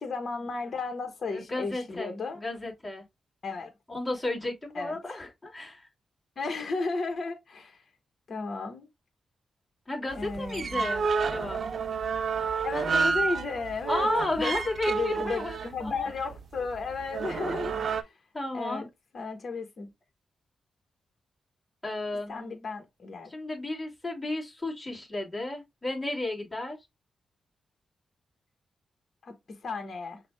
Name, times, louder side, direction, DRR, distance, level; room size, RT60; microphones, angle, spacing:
voice 1, 0.0-2.4 3.4-3.7 4.7-5.2 6.4-7.8 8.3-8.9 10.1-10.9 12.6-14.1 14.4-14.5 14.9-18.1 18.5-18.9 19.1-19.9 22.3-23.3 29.2-29.3 29.6-30.2, left 4 dB, 50° left, 1.2 m, -34 dB
voice 2, 1.3-3.0 3.9-5.9 9.9-11.6 13.9-16.1 18.3-18.8 21.8-22.5 23.3-26.8, left 2 dB, 10° left, 2.7 m, -33 dB
sound 1, 10.1-18.0, right 5 dB, 60° right, 0.6 m, -30 dB
5.9 x 2.4 x 3.3 m
cardioid pair, 85°, 0 cm